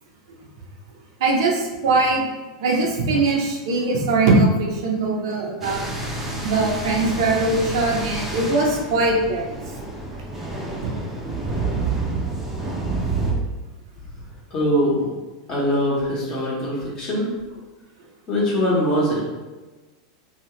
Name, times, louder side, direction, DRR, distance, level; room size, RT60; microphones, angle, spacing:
voice 1, 1.2-2.2 2.6-5.8 6.4-9.4, right 3 dB, 75° right, -1 dB, 0.7 m, -21 dB
sound 1, 5.6-13.3, right 3 dB, 10° right, 0.6 m, -28 dB
voice 2, 14.5-15.1 15.5-17.3 18.3-19.3, equal, 35° left, -5 dB, 1.2 m, -22 dB
2.8 x 2.3 x 3.1 m, 1.2 s
hypercardioid pair, 120°, 2 cm